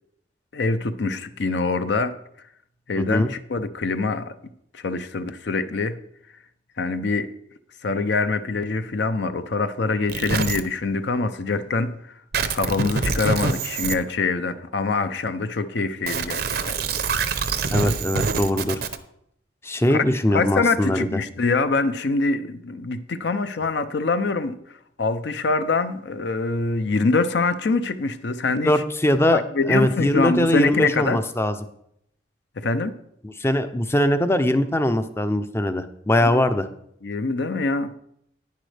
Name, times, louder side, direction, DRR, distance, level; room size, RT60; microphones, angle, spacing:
voice 1, 0.5-2.1 2.9-4.3 4.7-6.0 6.8-7.3 7.8-12.2 12.5-16.8 19.9-20.0 20.3-28.8 29.3-31.2 32.6-33.0 36.2-36.4 37.0-38.0, left 3 dB, 60° left, 11 dB, 0.5 m, -24 dB
voice 2, 3.0-3.3 17.7-18.8 19.6-21.2 28.7-31.5 33.2-36.7, left 1 dB, 15° left, 9 dB, 0.5 m, -21 dB
sound 1, 10.1-10.6 12.3-13.9 16.1-19.0, right 4 dB, 55° right, 0.6 m, -25 dB
10.5 x 9.9 x 3.3 m, 0.73 s
head